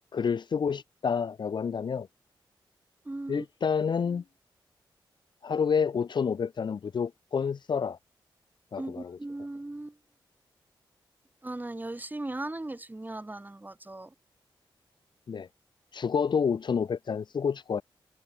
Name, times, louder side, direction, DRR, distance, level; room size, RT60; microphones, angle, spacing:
voice 1, 0.1-2.1 3.3-4.2 5.4-8.0 8.7-9.2 15.3-15.5 15.9-17.8, left 6 dB, 55° left, 0.8 m, -29 dB
voice 2, 3.0-3.4 8.8-10.0 11.4-14.1, right 2 dB, 20° right, 6.7 m, -38 dB
cardioid pair, 65°, 9 cm